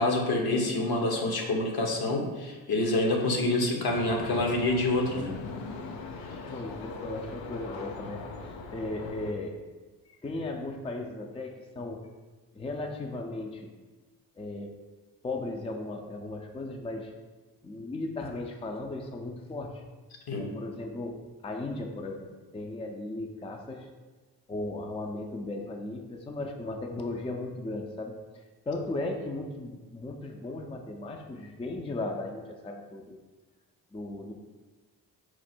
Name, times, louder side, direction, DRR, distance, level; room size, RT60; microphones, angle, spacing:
voice 1, 0.0-5.4 20.3-20.5, left 2 dB, 60° left, 2 dB, 0.9 m, -27 dB
sound 1, 3.9-9.3, left 4 dB, 80° left, 0.6 m, -40 dB
voice 2, 6.3-9.6 10.2-12.0 12.5-13.7 14.4-14.7 15.2-17.1 17.6-19.8 20.4-23.9 24.5-33.2 33.9-34.3, left 2 dB, 15° left, 3 dB, 0.4 m, -36 dB
4.4 x 2.1 x 4.2 m, 1.3 s
supercardioid pair, 50°, 43 cm